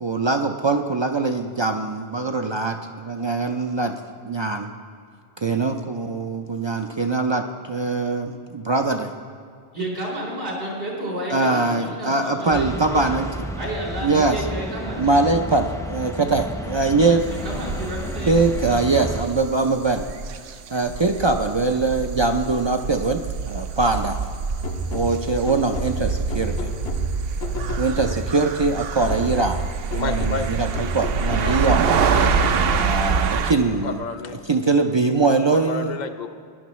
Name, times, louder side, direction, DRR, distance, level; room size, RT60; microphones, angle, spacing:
voice 1, 0.0-3.9 4.2-4.7 5.4-9.1 11.3-13.3 14.0-14.4 15.0-17.3 18.3-20.0 20.7-24.2 24.9-26.7 27.8-29.6 29.9-31.9 32.8-34.0 34.5-36.0, right 3 dB, 50° right, 5 dB, 0.3 m, -22 dB
voice 2, 9.7-13.2 13.6-15.3 17.3-18.3, right 1 dB, 85° right, -4 dB, 4.2 m, -31 dB
sound 1, 12.5-19.2, equal, 5° left, 0.6 m, -32 dB
sound 2, 17.2-33.5, right 6 dB, 70° right, 0.8 m, -26 dB
sound 3, 24.6-28.5 29.1-33.0, left 2 dB, 75° left, 1.1 m, -33 dB
voice 3, 30.0-30.5 31.4-31.5 32.2-32.9 33.8-34.4 35.5-36.3, left 4 dB, 50° left, 8 dB, 0.6 m, -31 dB
18.5 x 10.5 x 3.1 m, 2.3 s
omnidirectional pair, 1.1 m